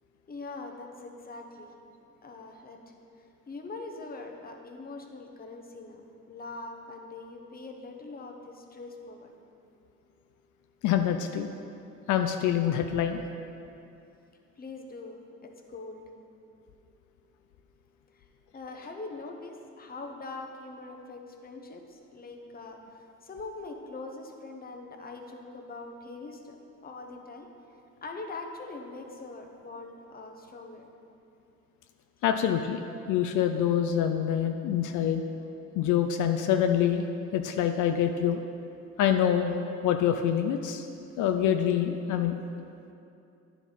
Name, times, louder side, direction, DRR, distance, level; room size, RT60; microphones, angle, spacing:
voice 1, 0.3-1.7 2.2-6.0 6.3-9.3 14.6-16.0 18.1-18.3 18.5-26.6 26.8-27.5 28.0-30.8, left 3 dB, 30° left, 3 dB, 0.8 m, -42 dB
voice 2, 10.8-11.5 12.1-13.2 32.2-32.8 33.1-35.2 35.8-37.1 37.3-38.4 39.0-39.6 39.8-40.9 41.2-42.4, left 9 dB, 80° left, 6 dB, 0.5 m, -26 dB
9.9 x 4.5 x 4.0 m, 2.7 s
cardioid pair, 90°, 30 cm